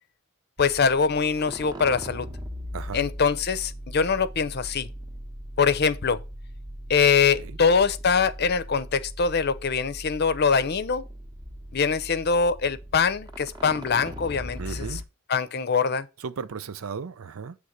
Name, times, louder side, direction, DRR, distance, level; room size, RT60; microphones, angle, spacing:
voice 1, 0.6-2.3 2.9-4.9 5.6-6.2 6.9-11.0 11.7-15.0 15.3-16.1, left 5 dB, 50° left, 0.6 m, -23 dB
sound 1, 0.6-15.0, equal, 20° right, 0.9 m, -39 dB
voice 2, 2.7-3.1 7.4-7.5 14.6-15.0 16.2-17.6, right 5 dB, 90° right, 0.5 m, -35 dB
7.8 x 3.3 x 6.4 m
head